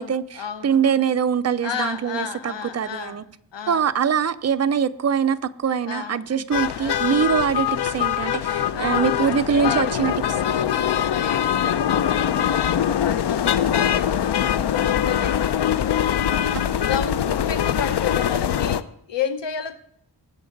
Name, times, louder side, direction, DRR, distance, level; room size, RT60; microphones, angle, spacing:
voice 1, 0.0-0.8 1.6-3.2 3.5-3.9 5.9-6.3 6.8-7.1 8.7-16.1 16.8-19.8, left 7 dB, 90° left, 1.0 m, -32 dB
voice 2, 0.6-3.2 3.7-10.1 16.5-16.6, right 7 dB, 40° right, 0.5 m, -23 dB
sound 1, 6.5-18.8, left 9 dB, 70° left, 0.6 m, -22 dB
20.0 x 7.9 x 3.9 m
wide cardioid pair, 150°, 42 cm